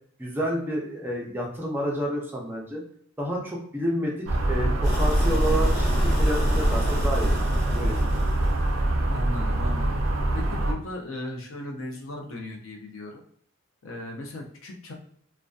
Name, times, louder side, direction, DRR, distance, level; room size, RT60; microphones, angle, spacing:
voice 1, 0.2-2.8 3.2-8.2, equal, 10° right, -2 dB, 0.4 m, -30 dB
sound 1, 4.3-10.7, right 1 dB, 70° right, 0.4 m, -25 dB
sound 2, 4.8-8.8, equal, 20° left, 0.8 m, -25 dB
voice 2, 9.1-10.0 10.3-13.2 13.8-14.9, left 1 dB, 75° left, 1 dB, 0.5 m, -37 dB
2.5 x 2.1 x 2.3 m, 0.65 s
head